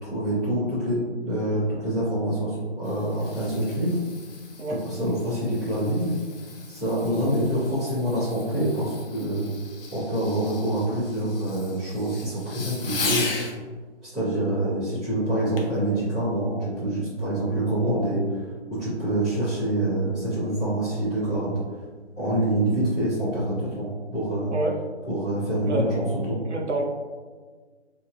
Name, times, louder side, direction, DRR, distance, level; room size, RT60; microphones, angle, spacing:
voice 1, 0.0-3.9 4.7-6.1 6.7-9.5 9.9-13.3 14.0-18.4 18.7-21.5 22.2-24.5 25.0-26.4, right 1 dB, ahead, -20 dB, 0.5 m, -26 dB
Fireworks, 2.6-13.6 15.6-15.8 16.4-16.5, left 4 dB, 55° left, 0.7 m, -37 dB
voice 2, 26.4-26.9, right 1 dB, 80° right, 1 dB, 0.7 m, -27 dB
4.4 x 2.9 x 2.3 m, 1.5 s
figure-of-eight pair, 145°, 35 cm